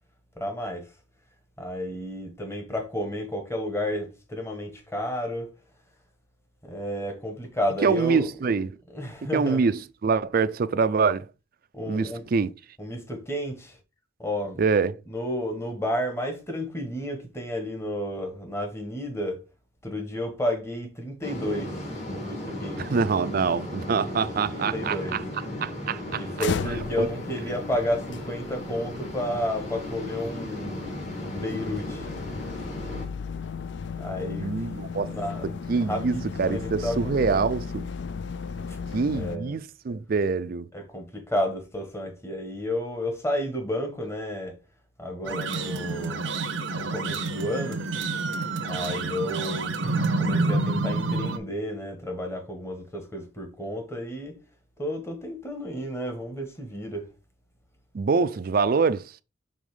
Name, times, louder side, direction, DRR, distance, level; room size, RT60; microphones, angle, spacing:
voice 1, 0.4-0.9 1.6-5.5 6.6-8.3 8.9-9.6 11.7-12.2 12.8-13.8 14.2-14.6 15.1-19.4 19.8-22.9 24.4-25.2 26.1-32.1 34.0-34.5 35.0-37.5 38.7-38.8 39.1-39.5 40.7-44.5 45.0-46.2 46.7-47.8 48.1-48.3 48.7-49.7 50.2-54.3 54.8-57.1, equal, 15° left, 1.3 m, -32 dB
voice 2, 7.8-8.7 9.3-11.3 11.9-12.5 14.6-15.0 22.8-25.2 25.6-26.2 27.0-27.1 34.4-35.1 35.7-37.9 38.9-40.7 57.9-59.1, right 5 dB, 50° right, 0.4 m, -25 dB
sound 1, 21.2-33.1, left 1 dB, 35° left, 2.1 m, -36 dB
sound 2, 26.4-39.4, left 5 dB, 65° left, 0.4 m, -36 dB
sound 3, 45.2-51.4, right 3 dB, 85° right, 0.8 m, -28 dB
5.4 x 3.6 x 4.9 m
head